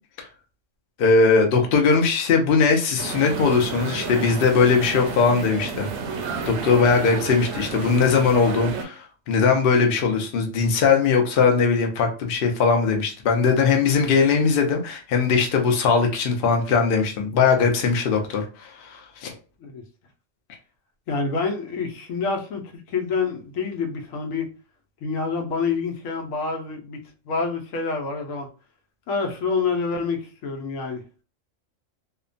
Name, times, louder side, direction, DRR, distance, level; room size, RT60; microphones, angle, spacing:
voice 1, 1.0-5.9 6.5-19.3, left 5 dB, 55° left, 0.7 m, -20 dB
sound 1, 3.0-8.8, right 4 dB, 65° right, 0.8 m, -31 dB
voice 2, 21.1-22.6 22.9-24.5 25.0-27.0 27.3-28.5 29.1-31.0, left 4 dB, 80° left, 1.0 m, -27 dB
2.9 x 2.1 x 2.4 m
omnidirectional pair, 1.4 m